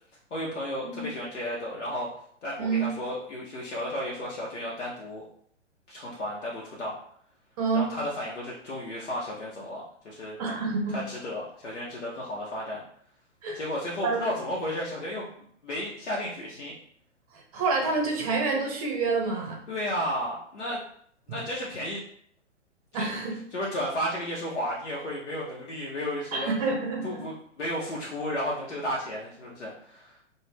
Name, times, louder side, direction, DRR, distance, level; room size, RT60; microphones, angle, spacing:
voice 1, 0.3-2.1 2.4-5.2 5.9-6.9 7.7-10.4 10.9-12.8 13.5-16.8 19.7-20.8 21.3-22.0 22.9-23.1 23.5-26.5 27.0-30.2, equal, 65° left, -5 dB, 0.7 m, -33 dB
voice 2, 2.6-2.9 7.6-7.9 10.4-11.0 13.4-13.6 14.0-14.2 17.3-19.6 22.9-23.4 26.3-27.2, right 4 dB, 30° right, 0 dB, 0.6 m, -28 dB
2.5 x 2.1 x 3.3 m, 0.63 s
figure-of-eight pair, 115°, 37 cm